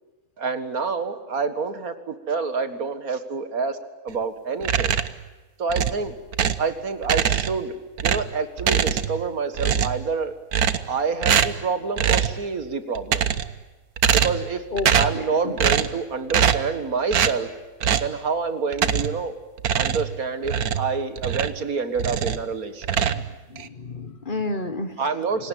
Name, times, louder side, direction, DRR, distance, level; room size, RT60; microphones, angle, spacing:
voice 1, 0.4-3.8 4.0-4.9 5.6-6.1 6.6-7.7 8.0-10.3 10.9-13.3 14.1-14.6 14.9-17.5 18.0-19.4 19.8-22.8 25.0-25.5, right 4 dB, 75° right, 9 dB, 2.2 m, -27 dB
sound 1, 4.6-5.2 5.7-6.7 7.0-7.7 8.0-9.3 9.5-10.1 10.5-11.0 11.2-11.6 12.0-12.4 12.9-13.6 14.0-14.5 14.8-15.2 15.6-16.0 16.3-16.7 17.1-17.4 17.8-18.1 18.7-19.2 19.6-21.6 22.0-22.5 22.8-23.7, right 8 dB, 90° right, 1.5 m, -23 dB
voice 2, 15.1-15.5 23.0-23.2 23.5-24.9, left 2 dB, 35° left, 10 dB, 1.5 m, -30 dB
28.5 x 18.5 x 9.2 m, 1.2 s
omnidirectional pair, 1.5 m